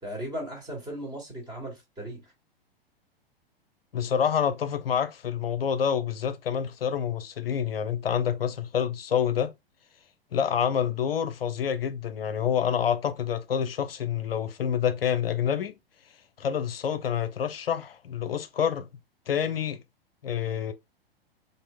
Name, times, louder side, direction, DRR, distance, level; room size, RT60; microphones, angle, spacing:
voice 1, 0.0-2.2, equal, 15° right, 2.0 m, -37 dB
voice 2, 3.9-9.5 10.3-15.7 16.4-18.9 19.3-19.8 20.2-20.7, left 8 dB, 70° left, 0.5 m, -27 dB
4.2 x 3.3 x 2.3 m
figure-of-eight pair, 105°, 30 cm